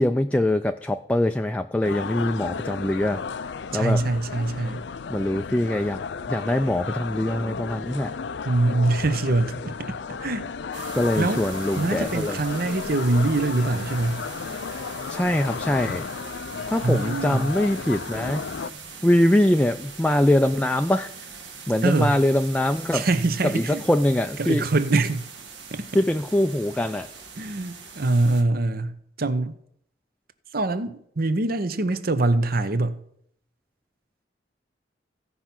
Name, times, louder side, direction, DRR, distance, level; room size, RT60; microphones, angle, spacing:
voice 1, 0.0-3.2 3.7-4.0 5.1-6.0 6.3-8.1 10.9-12.4 15.1-16.1 16.7-18.5 19.0-21.1 21.7-23.1 23.5-24.6 25.9-27.1, left 1 dB, 5° left, 0.4 m, -23 dB
sound 1, 1.8-18.7, left 5 dB, 70° left, 0.5 m, -34 dB
voice 2, 3.7-4.8 8.5-10.9 11.2-11.4 11.8-14.2 16.8-17.5 21.8-22.2 22.9-23.8 24.4-25.2 25.7-25.9 27.4-29.5 30.5-33.0, right 2 dB, 55° right, 0.8 m, -24 dB
sound 2, 10.7-28.4, right 5 dB, 75° right, 1.6 m, -42 dB
15.5 x 5.6 x 5.9 m
head